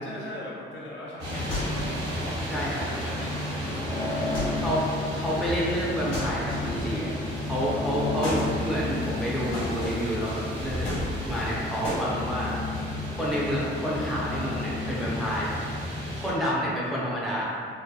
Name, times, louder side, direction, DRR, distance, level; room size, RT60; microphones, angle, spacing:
voice 1, 0.0-1.7 2.2-4.5 7.6-8.3, left 1 dB, 70° left, -7 dB, 0.7 m, -42 dB
sound 1, 1.2-16.3, left 1 dB, 75° right, 1.2 m, -32 dB
sound 2, 1.5-2.0 4.3-4.8 6.1-6.9 8.2-8.5 9.5-10.1 10.8-11.5 11.8-12.1, left 1 dB, 90° left, 1.0 m, -33 dB
voice 2, 2.5-2.9 4.5-4.9 5.1-7.2 7.5-10.9 11.2-12.6 13.2-15.5 15.9-17.4, equal, ahead, -7 dB, 0.5 m, -29 dB
2.7 x 2.1 x 2.2 m, 2.3 s
cardioid pair, 90°, 20 cm